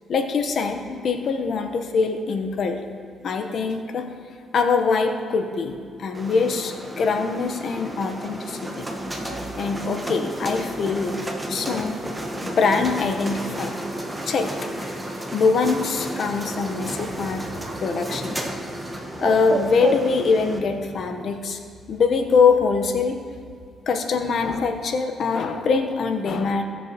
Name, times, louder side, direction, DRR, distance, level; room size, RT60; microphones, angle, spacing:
voice 1, 0.1-2.8 3.2-4.1 4.5-8.9 9.6-12.0 12.4-13.8 14.2-17.5 17.8-18.4 19.2-21.6 21.9-23.2 23.9-26.6, left 4 dB, 60° left, 6 dB, 1.0 m, -23 dB
sound 1, 6.1-20.6, right 1 dB, 10° right, 1.0 m, -33 dB
Bird, 15.8-21.4, right 3 dB, 40° right, 0.8 m, -34 dB
17.0 x 6.8 x 3.0 m, 2.4 s
cardioid pair, 90°, 0 cm